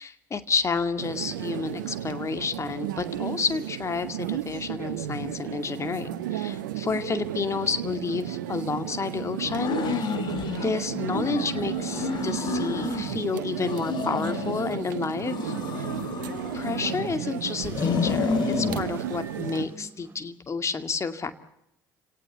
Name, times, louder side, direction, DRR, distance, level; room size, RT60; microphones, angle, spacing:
voice 1, 0.0-10.1 10.6-15.9 16.5-21.3, left 5 dB, 30° left, 9 dB, 2.2 m, -30 dB
sound 1, 1.0-19.7, right 12 dB, 70° right, 1.3 m, -33 dB
sound 2, 9.5-10.7 11.1-13.2 13.6-14.8 15.2-17.1 17.6-18.8, left 5 dB, 45° left, 2.4 m, -30 dB
sound 3, 9.8-20.2, right 2 dB, 20° right, 7.0 m, -48 dB
29.0 x 18.0 x 8.4 m, 0.83 s
figure-of-eight pair, 55°, 10 cm